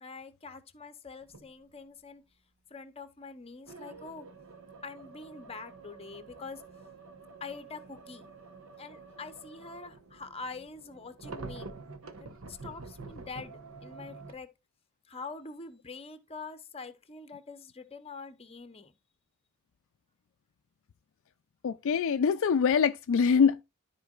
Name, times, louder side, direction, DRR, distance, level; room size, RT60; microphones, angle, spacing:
voice 1, 0.0-2.2 2.7-4.3 4.8-6.6 7.4-8.3 8.8-11.8 12.2-14.5 15.1-18.9, left 4 dB, 30° left, 0.8 m, -45 dB
sound 1, 1.2-1.5 3.7-14.4, right 3 dB, 70° right, 1.0 m, -48 dB
voice 2, 21.6-23.6, left 6 dB, 65° left, 0.4 m, -24 dB
13.0 x 4.4 x 2.4 m
head